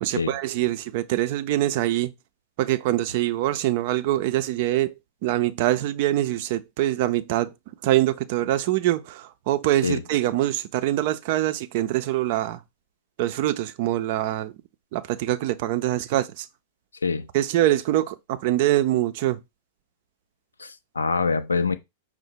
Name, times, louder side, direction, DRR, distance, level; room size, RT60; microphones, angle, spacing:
voice 1, 0.0-2.1 2.6-4.9 5.2-7.5 7.8-12.6 13.2-14.5 14.9-16.4 17.3-19.4, right 14 dB, 50° right, 0.4 m, -24 dB
voice 2, 20.6-21.8, left 4 dB, 80° left, 0.4 m, -25 dB
5.5 x 2.1 x 4.5 m
figure-of-eight pair, 95°, 0 cm